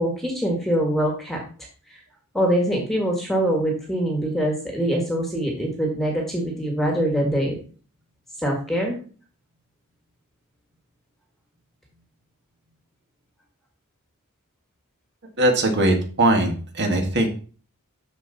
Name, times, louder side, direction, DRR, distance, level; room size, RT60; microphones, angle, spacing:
voice 1, 0.0-1.4 2.3-7.6 8.4-8.9, equal, ahead, 0 dB, 1.7 m, -23 dB
voice 2, 15.4-17.3, right 1 dB, 50° right, 3 dB, 1.8 m, -20 dB
12.5 x 4.6 x 4.1 m, 0.40 s
head